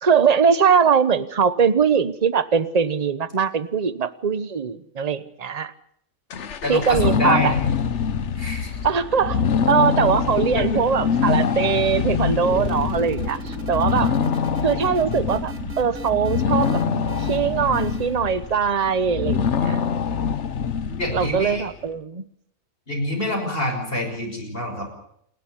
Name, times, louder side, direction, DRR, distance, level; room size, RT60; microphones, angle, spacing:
voice 1, 0.0-5.7 6.7-7.5 8.8-9.4 9.7-14.1 14.6-16.8 17.2-19.8 21.1-22.2, right 6 dB, 30° right, 14 dB, 1.1 m, -21 dB
sound 1, 6.3-21.7, left 6 dB, 60° left, 1.3 m, -24 dB
voice 2, 6.6-7.6 8.4-8.7 10.5-10.6 20.9-21.6 22.9-24.9, left 1 dB, 40° left, 2 dB, 6.3 m, -26 dB
sound 2, 12.4-18.2, right 3 dB, 85° right, 2.9 m, -35 dB
28.5 x 12.0 x 10.0 m, 0.70 s
omnidirectional pair, 1.4 m